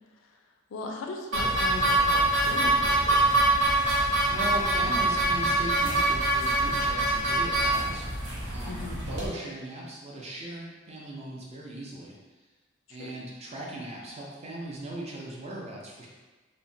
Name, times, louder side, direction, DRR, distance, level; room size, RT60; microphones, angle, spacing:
voice 1, 0.7-3.5 8.7-9.0 12.9-13.1, left 3 dB, 85° left, 2 dB, 0.4 m, -38 dB
sound 1, 1.3-9.3, right 2 dB, 80° right, 0.8 m, -24 dB
voice 2, 4.3-8.1 8.4-12.2 12.9-16.1, right 1 dB, 35° right, -3 dB, 0.5 m, -38 dB
2.9 x 2.1 x 2.6 m, 1.3 s
head